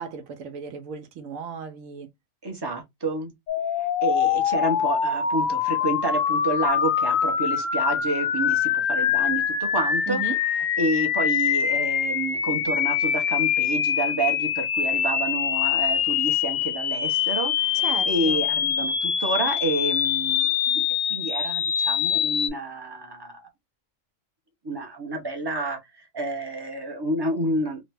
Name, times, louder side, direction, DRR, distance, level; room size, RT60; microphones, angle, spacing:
voice 1, 0.0-2.1 10.1-10.4 17.7-18.5, right 6 dB, 75° right, 1.0 m, -35 dB
voice 2, 2.4-3.3 3.8-10.2 10.8-20.8 21.1-23.5 24.6-27.8, right 2 dB, 25° right, 0.5 m, -29 dB
sound 1, 3.5-22.5, left 8 dB, 75° left, 1.0 m, -24 dB
2.9 x 2.1 x 3.3 m
omnidirectional pair, 1.4 m